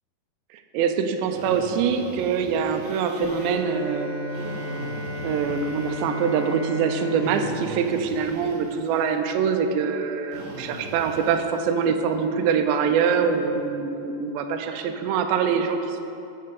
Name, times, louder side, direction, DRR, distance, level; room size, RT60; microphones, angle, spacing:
voice 1, 0.7-4.1 5.2-16.0, right 6 dB, 85° right, 5 dB, 2.8 m, -24 dB
Drill, 1.3-3.5 4.3-6.5 7.2-9.1 10.3-11.7, right 1 dB, 65° right, 4.2 m, -40 dB
Bowed string instrument, 3.1-8.8, left 1 dB, 45° right, 0.9 m, -34 dB
sound 1, 3.2-5.9, right 2 dB, 85° left, 2.9 m, -38 dB
15.0 x 5.6 x 5.2 m, 2.7 s
omnidirectional pair, 5.0 m